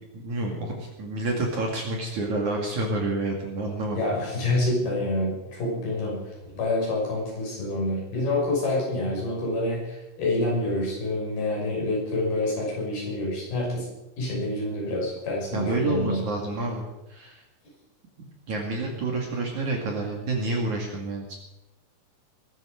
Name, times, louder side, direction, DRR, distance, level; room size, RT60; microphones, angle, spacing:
voice 1, 0.1-4.0 15.5-16.8 17.1-17.4 18.2-21.4, right 2 dB, 50° right, 0 dB, 3.2 m, -29 dB
voice 2, 4.0-13.9 14.2-16.2, left 2 dB, 60° left, -3 dB, 8.0 m, -27 dB
22.0 x 12.5 x 5.1 m, 0.95 s
omnidirectional pair, 5.1 m